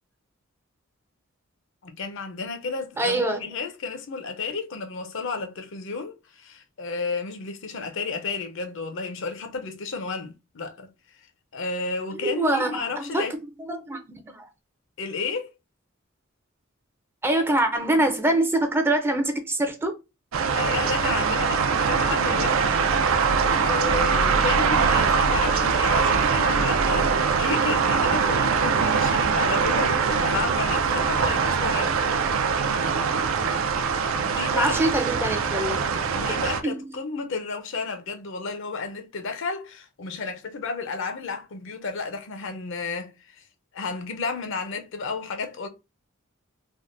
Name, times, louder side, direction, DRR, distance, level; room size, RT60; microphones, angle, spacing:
voice 1, 1.8-10.9 11.5-13.3 15.0-15.5 20.5-22.8 23.6-32.0 34.1-34.9 36.1-43.4 43.7-45.7, left 4 dB, 65° left, 0.6 m, -32 dB
voice 2, 3.0-3.4 12.2-13.3 13.7-14.4 17.2-20.0 34.5-35.7 36.2-36.4 36.6-36.9, right 1 dB, 10° right, 0.4 m, -24 dB
sound 1, 20.3-36.6, right 5 dB, 75° right, 0.4 m, -22 dB
3.5 x 2.1 x 2.4 m
head